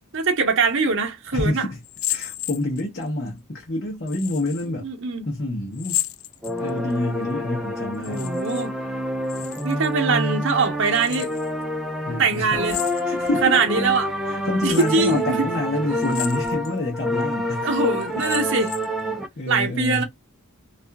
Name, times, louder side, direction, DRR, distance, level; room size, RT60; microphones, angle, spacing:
voice 1, 0.1-1.7 4.8-5.3 8.0-8.7 9.6-11.3 12.2-12.8 13.4-14.1 14.6-15.5 17.6-18.7 19.5-20.0, right 4 dB, 60° right, 0.8 m, -22 dB
voice 2, 1.3-1.8 2.1-4.9 5.3-6.0 6.6-8.3 12.0-12.6 13.1-13.6 14.3-17.7 19.4-20.0, left 2 dB, 45° left, 0.7 m, -27 dB
sound 1, 1.8-3.1 4.1-4.7 5.7-6.9 7.9-8.7 8.9-9.9 10.9-11.5 12.6-13.4 13.9-14.0 14.6-15.1 16.0-16.7 17.2-17.3 18.0-19.0, left 14 dB, 65° left, 0.4 m, -32 dB
sound 2, 6.4-19.3, equal, ahead, 0.4 m, -27 dB
2.7 x 2.4 x 2.2 m
head